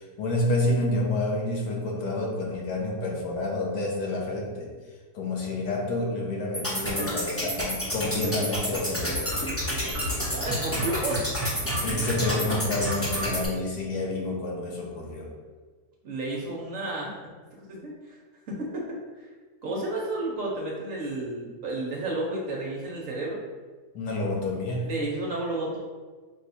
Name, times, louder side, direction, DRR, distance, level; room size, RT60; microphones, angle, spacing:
voice 1, 0.0-4.7 5.1-9.3 11.8-15.3 23.9-24.9, left 2 dB, 75° left, -1 dB, 1.4 m, -29 dB
sound 1, 6.5-13.5, equal, 15° left, 0.4 m, -29 dB
voice 2, 10.3-11.3 16.0-17.1 17.7-18.2 18.5-19.0 19.6-23.4 24.8-25.8, right 2 dB, 60° right, -3 dB, 1.0 m, -31 dB
4.6 x 2.3 x 4.1 m, 1.4 s
omnidirectional pair, 1.8 m